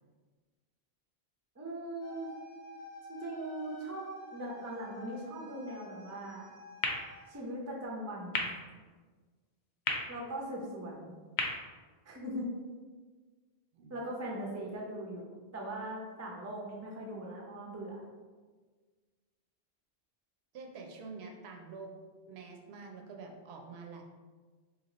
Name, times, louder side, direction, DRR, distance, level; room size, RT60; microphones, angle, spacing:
voice 1, 1.6-2.3 3.1-4.1 4.3-6.5 7.3-8.5 10.1-11.1 12.0-12.5 13.9-15.2 15.5-18.0, right 1 dB, 20° right, -1 dB, 0.4 m, -40 dB
sound 1, 2.0-7.4, left 1 dB, 40° left, 0.6 m, -51 dB
sound 2, 6.8-12.8, left 3 dB, 80° left, 0.9 m, -40 dB
voice 2, 20.5-21.9 22.3-24.0, right 4 dB, 75° right, 2 dB, 0.8 m, -47 dB
2.8 x 2.8 x 4.0 m, 1.4 s
omnidirectional pair, 1.1 m